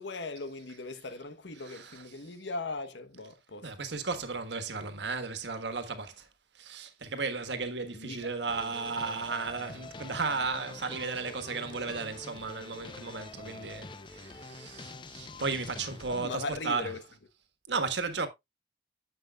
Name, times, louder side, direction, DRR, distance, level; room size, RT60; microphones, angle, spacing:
voice 1, 0.0-3.7 7.9-8.3 16.1-17.0, left 3 dB, 90° left, 1.1 m, -39 dB
voice 2, 1.6-2.0 3.6-6.3 6.5-16.9 17.7-18.3, right 4 dB, 85° right, 1.5 m, -34 dB
sound 1, 8.5-16.2, left 3 dB, 25° left, 0.6 m, -46 dB
10.5 x 7.5 x 2.4 m
head